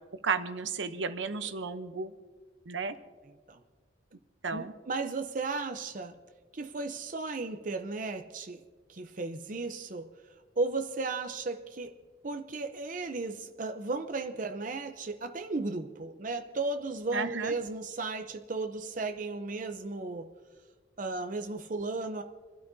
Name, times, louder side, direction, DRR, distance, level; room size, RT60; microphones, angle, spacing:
voice 1, 0.2-2.1 2.7-2.9 4.4-4.7 17.1-17.5, right 5 dB, 80° right, 9 dB, 0.9 m, -33 dB
voice 2, 4.5-6.1 6.5-8.6 8.9-10.1 10.6-12.0 12.2-20.3 21.0-22.2, right 3 dB, 45° right, 6 dB, 0.7 m, -35 dB
29.0 x 12.5 x 2.7 m, 1.5 s
head